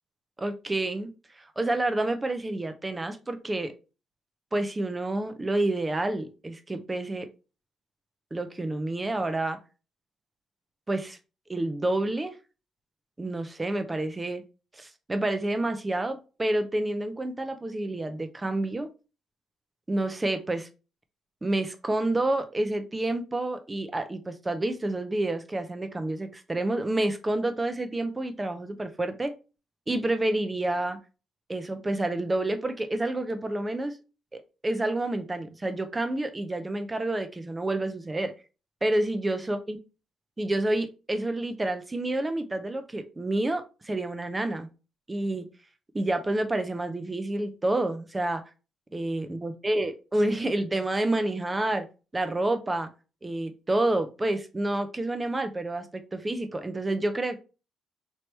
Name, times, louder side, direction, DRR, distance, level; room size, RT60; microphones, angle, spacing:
voice 1, 0.4-3.7 4.5-7.3 8.3-9.6 10.9-11.2 11.5-12.3 13.2-14.4 14.7-18.9 19.9-20.7 21.4-29.3 29.9-31.0 31.5-34.0 34.3-38.3 38.8-39.8 40.4-44.7 45.1-45.5 45.9-48.4 48.9-51.8 52.1-52.9 53.2-57.4, right 2 dB, 20° right, 0.8 m, -29 dB
4.6 x 2.8 x 3.3 m
cardioid pair, 90°, 0 cm